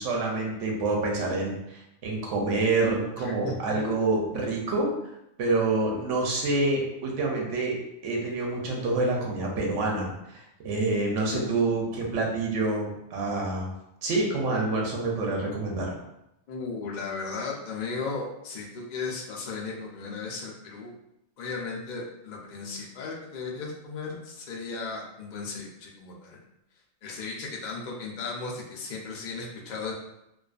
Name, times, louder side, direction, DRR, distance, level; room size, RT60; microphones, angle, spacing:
voice 1, 0.0-4.9 5.4-13.7 14.0-16.0, right 2 dB, 85° right, -1 dB, 1.0 m, -27 dB
voice 2, 3.2-3.8 11.2-12.2 16.5-20.9 21.4-26.4 27.0-29.9, left 4 dB, 55° left, -2 dB, 0.5 m, -36 dB
2.5 x 2.3 x 2.3 m, 0.85 s
omnidirectional pair, 1.2 m